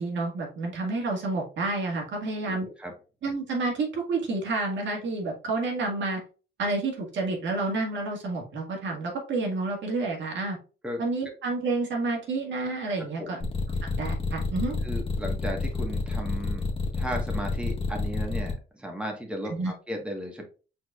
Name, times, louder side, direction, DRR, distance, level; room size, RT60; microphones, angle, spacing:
voice 1, 0.0-2.7 3.2-6.2 6.6-10.6 11.0-13.4 13.9-14.8 19.6-19.7, right 3 dB, 70° right, 1 dB, 1.8 m, -29 dB
voice 2, 2.4-2.9 10.8-11.0 13.2-13.5 14.8-16.7 16.9-20.4, equal, 5° right, 2 dB, 1.3 m, -35 dB
sound 1, 13.4-18.5, left 4 dB, 25° left, 1.4 m, -29 dB
4.6 x 4.6 x 2.4 m, 0.34 s
cardioid pair, 90°, 20 cm